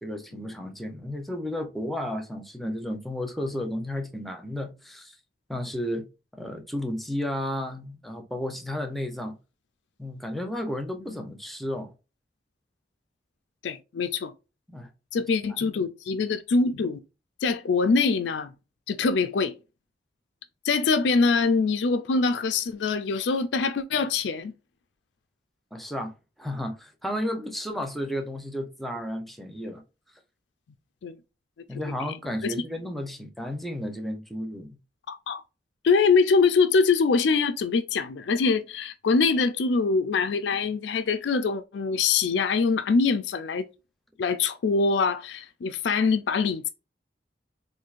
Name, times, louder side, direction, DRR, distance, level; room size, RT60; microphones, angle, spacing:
voice 1, 0.0-5.2 5.5-6.1 6.3-9.3 10.0-11.9 14.7-14.9 25.7-29.8 31.7-34.8, left 1 dB, ahead, 0.6 m, -33 dB
voice 2, 13.6-14.3 15.1-17.0 17.4-18.5 18.9-19.5 20.6-24.5 31.0-31.2 32.4-32.5 35.1-35.4 35.8-43.6 44.2-46.7, left 4 dB, 75° left, 0.4 m, -24 dB
4.5 x 2.6 x 2.5 m
head